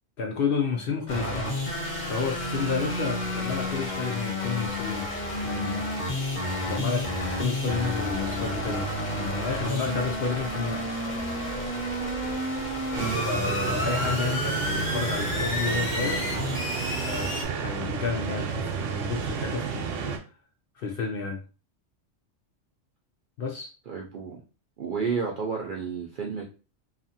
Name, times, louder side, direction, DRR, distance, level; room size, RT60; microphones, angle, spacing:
voice 1, 0.2-1.4 1.8-5.1 5.4-5.9 6.6-7.1 7.4-10.9 13.3-16.3 17.0-19.9 20.2-20.3 20.8-21.4 23.4-23.7, left 5 dB, 65° left, 2 dB, 0.6 m, -31 dB
sound 1, 1.1-17.4, left 1 dB, 40° left, 0.9 m, -30 dB
sound 2, 12.9-20.2, right 6 dB, 80° right, 0.9 m, -32 dB
voice 2, 23.9-24.4 24.8-26.4, right 5 dB, 60° right, -1 dB, 0.5 m, -31 dB
2.6 x 2.4 x 2.7 m, 0.33 s
omnidirectional pair, 1.3 m